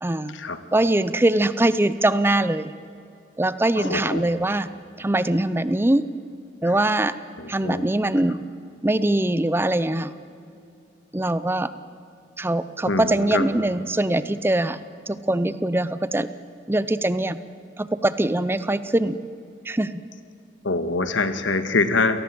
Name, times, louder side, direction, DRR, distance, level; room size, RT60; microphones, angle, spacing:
voice 1, 0.0-0.3 0.7-2.7 3.4-4.7 5.0-6.0 6.6-7.2 7.5-8.4 8.8-10.1 11.1-11.7 12.4-14.8 15.1-16.3 16.7-17.4 17.8-19.2 19.6-19.9, right 1 dB, 10° right, 14 dB, 0.6 m, -22 dB
voice 2, 3.8-4.4 6.6-6.7 7.4-7.8 12.9-13.5 20.6-22.2, left 3 dB, 85° left, 9 dB, 1.6 m, -25 dB
29.0 x 18.5 x 7.7 m, 2.5 s
head